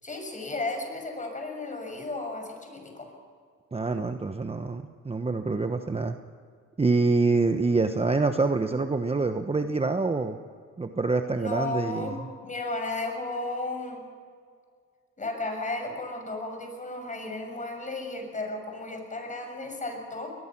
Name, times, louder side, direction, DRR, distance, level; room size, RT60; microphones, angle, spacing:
voice 1, 0.0-3.1 11.3-14.0 15.2-20.4, left 2 dB, 25° left, 4 dB, 6.7 m, -34 dB
voice 2, 3.7-6.2 6.8-10.4 10.8-12.2, right 3 dB, 20° right, 7 dB, 1.1 m, -26 dB
22.5 x 20.0 x 6.0 m, 2.1 s
cardioid pair, 90°, 30 cm